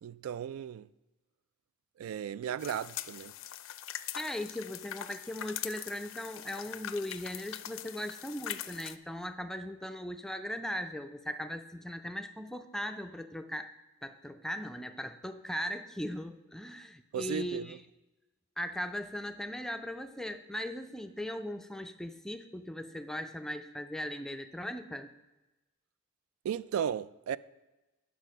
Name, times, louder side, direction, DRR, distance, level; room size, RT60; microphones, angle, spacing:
voice 1, 0.0-0.9 2.0-3.3 17.1-17.8 26.4-27.4, right 8 dB, 90° right, 0.3 m, -35 dB
sound 1, 2.6-9.0, left 12 dB, 70° left, 0.4 m, -42 dB
voice 2, 4.2-13.7 14.0-17.8 18.6-25.1, equal, ahead, 0.3 m, -38 dB
9.4 x 6.4 x 5.2 m
head